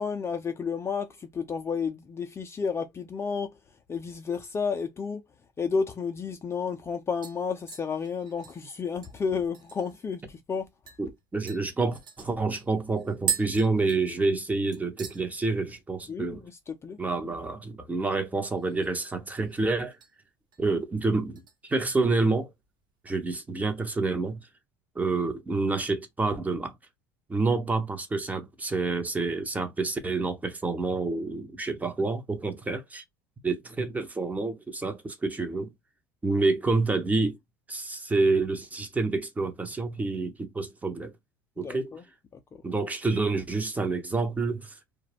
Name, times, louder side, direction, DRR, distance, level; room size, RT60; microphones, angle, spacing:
voice 1, 0.0-3.6 3.9-5.2 5.6-10.7 16.1-17.0 41.6-42.0 42.5-42.6, left 5 dB, 25° left, 0.5 m, -31 dB
sound 1, 6.1-6.2 6.6-6.9 7.2-10.1 10.4-10.5 10.9-11.0 11.5-14.5 14.7-15.2 15.6-16.0 16.2-16.3 18.4-19.1 19.4-20.1 20.5-20.8 21.4-22.3 22.6-22.7, right 8 dB, 40° right, 1.1 m, -38 dB
voice 2, 11.0-16.4 17.0-20.0 20.6-22.5 23.0-24.4 25.0-26.7 27.3-33.0 33.4-35.7 36.2-37.4 37.7-41.1 41.6-41.9 42.6-44.7, right 3 dB, 15° right, 0.8 m, -28 dB
2.3 x 2.1 x 3.4 m
hypercardioid pair, 95°, 11 cm